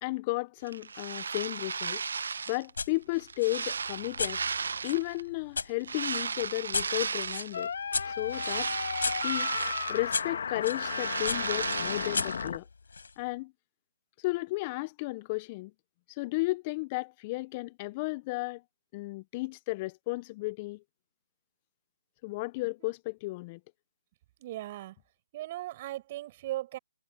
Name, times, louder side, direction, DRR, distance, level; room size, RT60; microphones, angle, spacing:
voice 1, 0.0-2.0 2.5-4.4 4.8-7.7 8.1-8.7 9.2-9.5 9.9-12.7 13.2-13.5 14.2-15.7 16.1-18.6 18.9-20.8 22.2-23.6, left 23 dB, 25° left, 0.5 m, -34 dB
sound 1, 0.7-2.7 3.1-5.2 5.8-7.6 8.0-10.3 10.6-12.5, right 5 dB, 70° right, 0.9 m, -35 dB
sound 2, 2.8-2.9 3.4-5.7 6.1-10.8 11.3-13.1, left 4 dB, 75° left, 4.3 m, -36 dB
sound 3, 7.5-12.6, left 6 dB, 60° left, 2.0 m, -34 dB
voice 2, 24.4-24.9 25.3-26.8, right 15 dB, 35° right, 6.8 m, -37 dB
hypercardioid pair, 150°, 0 cm